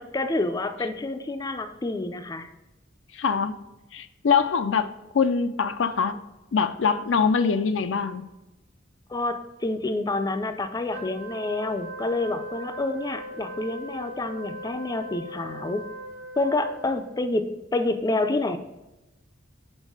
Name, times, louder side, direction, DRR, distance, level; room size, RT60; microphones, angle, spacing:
voice 1, 0.0-2.5 9.1-15.9 16.4-18.6, left 2 dB, 20° left, 8 dB, 0.4 m, -28 dB
voice 2, 3.1-3.5 3.9-6.2 6.5-8.3, left 6 dB, 85° left, 10 dB, 0.5 m, -23 dB
Wind instrument woodwind instrument, 10.9-17.2, right 1 dB, 65° right, 0.8 m, -39 dB
5.4 x 4.5 x 4.7 m, 0.99 s
head